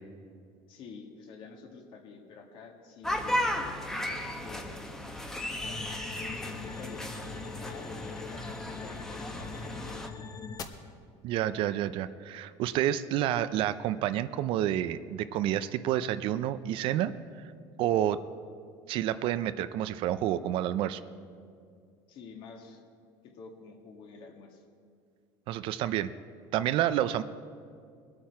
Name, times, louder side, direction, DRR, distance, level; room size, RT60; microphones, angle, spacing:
voice 1, 0.7-5.2 5.6-5.8 6.2-10.3 22.1-22.8 23.2-24.6, left 4 dB, 55° left, 2 dB, 1.9 m, -49 dB
sound 1, 3.0-10.1, left 1 dB, 5° left, 1.0 m, -35 dB
sound 2, 5.6-10.6, left 5 dB, 35° left, 0.9 m, -42 dB
voice 2, 11.2-17.1 17.8-18.2 18.9-21.0 25.5-26.1 26.5-27.2, right 12 dB, 55° right, 13 dB, 0.5 m, -29 dB
21.5 x 8.8 x 4.7 m, 2.3 s
cardioid pair, 140°, 10 cm